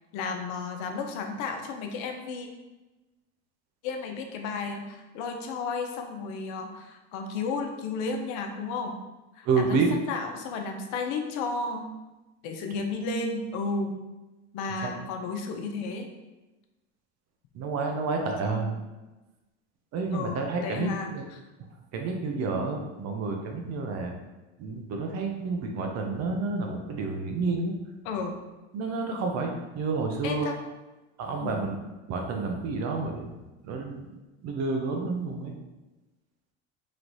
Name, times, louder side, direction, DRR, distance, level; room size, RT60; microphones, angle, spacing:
voice 1, 0.1-2.5 3.8-9.0 9.4-9.8 10.1-11.9 12.4-13.9 14.5-16.1 18.4-18.7 20.1-20.4 20.6-21.1 28.0-28.5 30.2-30.5 31.4-31.7, left 4 dB, 65° left, 4 dB, 0.7 m, -33 dB
voice 2, 9.4-9.9 14.8-14.9 17.5-18.8 19.9-21.2 21.9-24.1 24.6-27.7 28.7-30.5 31.2-31.8 32.1-33.3 33.6-34.1 34.4-35.5, right 4 dB, 50° right, 2 dB, 0.9 m, -29 dB
3.2 x 3.1 x 4.0 m, 1.1 s
supercardioid pair, 95°, 33 cm